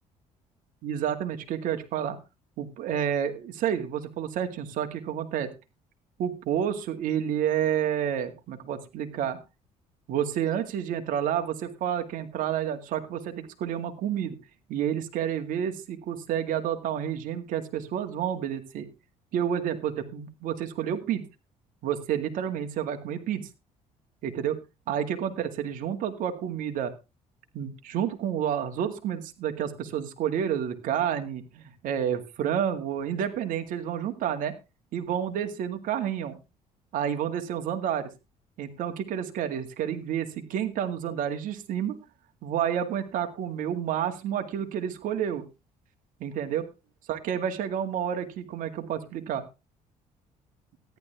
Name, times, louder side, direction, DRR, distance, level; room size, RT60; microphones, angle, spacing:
voice 1, 0.8-2.2 2.6-5.5 6.2-9.4 10.1-14.4 14.7-18.9 19.3-21.3 21.8-23.5 24.2-24.6 24.9-26.9 27.5-34.5 34.9-36.4 36.9-38.1 38.6-42.0 42.4-45.4 46.2-46.6 47.1-49.4, right 9 dB, 75° right, 7 dB, 2.1 m, -30 dB
14.0 x 11.0 x 3.5 m, 0.27 s
cardioid pair, 95°, 14 cm